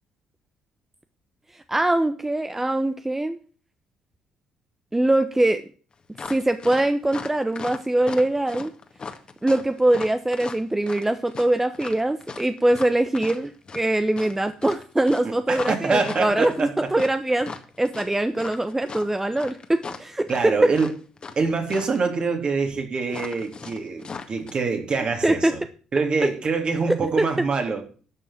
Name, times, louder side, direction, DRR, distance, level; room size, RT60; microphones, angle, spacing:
voice 1, 1.7-3.4 4.9-5.6 6.3-8.7 9.4-20.7 25.2-25.5 27.2-27.3, right 1 dB, 15° right, 9 dB, 1.1 m, -22 dB
sound 1, 6.1-21.4 21.7-22.0 23.1-24.5, left 5 dB, 40° left, 1.9 m, -38 dB
voice 2, 15.2-16.9 20.3-20.9 21.4-25.6 25.9-27.8, right 4 dB, 45° right, 4 dB, 3.2 m, -25 dB
12.0 x 6.1 x 7.4 m, 0.40 s
hypercardioid pair, 55°, 2 cm